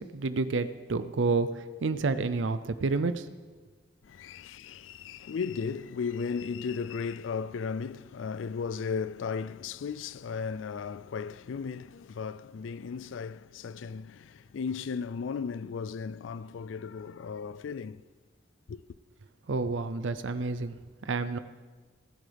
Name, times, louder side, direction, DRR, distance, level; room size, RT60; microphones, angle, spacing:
voice 1, 0.0-3.3 19.5-20.7 21.0-21.4, right 3 dB, 75° right, 0.6 m, -29 dB
voice 2, 4.0-18.0 18.7-18.8, left 5 dB, 90° left, 0.4 m, -35 dB
28.0 x 9.9 x 3.5 m
head